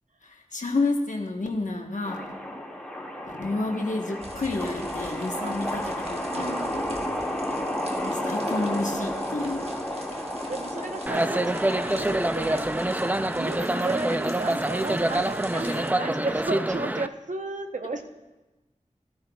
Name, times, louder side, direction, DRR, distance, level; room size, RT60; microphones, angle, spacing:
voice 1, 0.2-2.2 3.3-6.5 7.9-9.7, left 3 dB, 80° left, 2 dB, 1.1 m, -30 dB
sound 1, 2.1-14.2 14.9-15.2 15.6-15.7, equal, 10° left, 2.0 m, -32 dB
sound 2, 4.2-15.9, right 1 dB, 55° right, 1.4 m, -46 dB
voice 2, 6.3-6.8 10.3-12.7 13.4-18.0, right 3 dB, 80° right, 5 dB, 0.9 m, -34 dB
sound 3, 11.1-17.1, right 1 dB, 15° right, 0.4 m, -26 dB
15.0 x 14.0 x 2.3 m, 1.1 s
wide cardioid pair, 55°, 13 cm